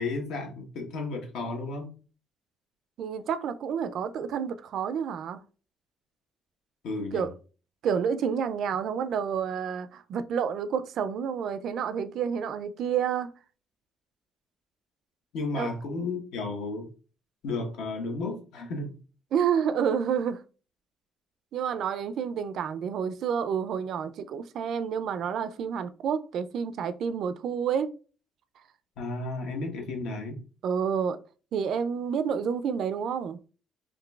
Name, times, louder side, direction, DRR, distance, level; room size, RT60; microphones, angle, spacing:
voice 1, 0.0-1.9 6.8-7.3 15.3-16.9 17.4-19.0 29.0-30.4, left 3 dB, 80° left, 1.0 m, -33 dB
voice 2, 3.0-5.4 7.1-7.3 7.8-13.3 15.5-15.7 19.3-20.4 21.5-28.0 30.6-31.2 31.5-33.4, right 7 dB, 60° right, 0.3 m, -29 dB
3.8 x 3.1 x 2.3 m
cardioid pair, 145°, 0 cm